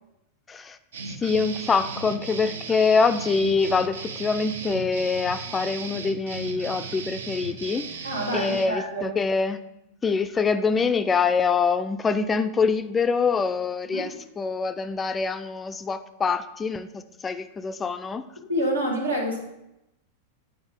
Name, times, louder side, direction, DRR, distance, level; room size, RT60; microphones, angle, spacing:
sound 1, 0.9-8.7, right 4 dB, 65° right, 0.5 m, -36 dB
voice 1, 1.2-7.9 8.3-9.6 10.0-18.2, left 5 dB, 20° left, 10 dB, 0.3 m, -25 dB
voice 2, 8.0-9.2 13.8-14.1 18.4-19.4, right 1 dB, 85° right, -1 dB, 1.4 m, -27 dB
7.9 x 4.9 x 3.6 m, 0.87 s
figure-of-eight pair, 90°, 0 cm